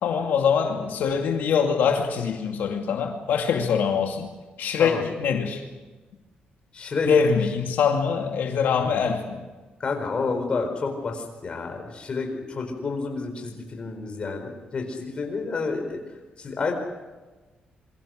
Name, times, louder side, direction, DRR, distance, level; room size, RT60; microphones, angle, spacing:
voice 1, 0.0-4.3 4.6-5.6 7.1-9.4, left 6 dB, 80° left, 2 dB, 2.4 m, -23 dB
voice 2, 6.7-7.1 8.8-9.0 9.8-16.0 16.4-16.7, left 4 dB, 35° left, 4 dB, 4.6 m, -30 dB
27.0 x 23.5 x 6.5 m, 1.2 s
wide cardioid pair, 170°, 3 cm